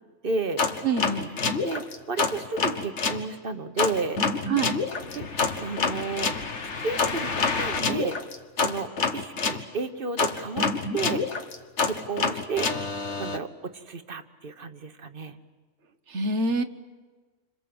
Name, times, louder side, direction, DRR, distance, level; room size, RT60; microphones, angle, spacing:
voice 1, 0.2-0.6 1.6-4.2 5.1-5.2 5.6-6.3 6.8-8.2 8.6-10.7 10.9-11.2 11.8-12.7 13.2-15.4, right 4 dB, 50° right, 9 dB, 1.4 m, -32 dB
sound 1, 0.6-3.2 3.8-9.6 10.2-13.4, left 4 dB, 70° left, 1.7 m, -27 dB
voice 2, 0.8-1.3 4.5-4.8 16.1-16.6, right 3 dB, 70° right, 9 dB, 1.5 m, -26 dB
28.5 x 26.0 x 7.9 m, 1.4 s
omnidirectional pair, 1.3 m